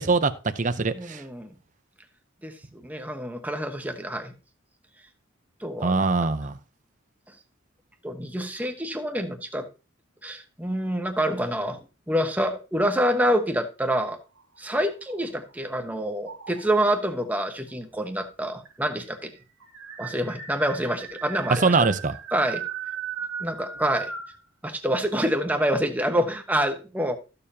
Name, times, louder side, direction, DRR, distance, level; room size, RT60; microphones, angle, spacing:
voice 1, 0.0-1.2 5.8-6.5 21.5-22.2, right 3 dB, 40° right, 0.7 m, -23 dB
voice 2, 0.9-1.5 2.4-4.3 5.6-6.1 8.0-9.7 10.2-11.8 12.1-14.2 14.6-19.3 20.0-21.7 22.3-22.6 23.4-24.1 24.6-27.2, equal, 10° right, 1.1 m, -27 dB
sound 1, 14.2-15.7 16.2-16.9 17.9-18.0 18.2-18.3 18.7-24.4, right 7 dB, 85° right, 1.6 m, -37 dB
14.0 x 6.8 x 2.8 m
head